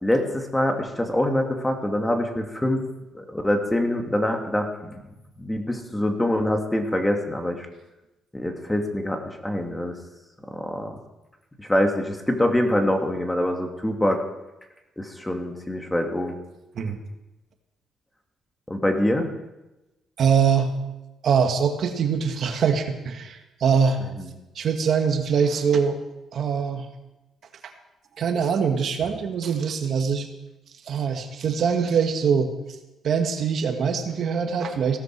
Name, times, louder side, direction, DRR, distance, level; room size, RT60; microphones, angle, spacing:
voice 1, 0.0-2.8 3.1-5.0 5.4-7.7 8.3-10.0 10.5-10.9 11.6-14.2 15.0-16.4 18.7-19.3 24.2-24.3, left 1 dB, 10° left, 4 dB, 2.2 m, -25 dB
voice 2, 20.2-20.7 21.2-24.0 24.6-26.0 26.3-26.9 28.2-30.3 30.9-32.5 33.0-35.0, right 6 dB, 65° right, 5 dB, 1.8 m, -23 dB
16.5 x 13.0 x 4.7 m, 1.0 s
cardioid pair, 90°, 0 cm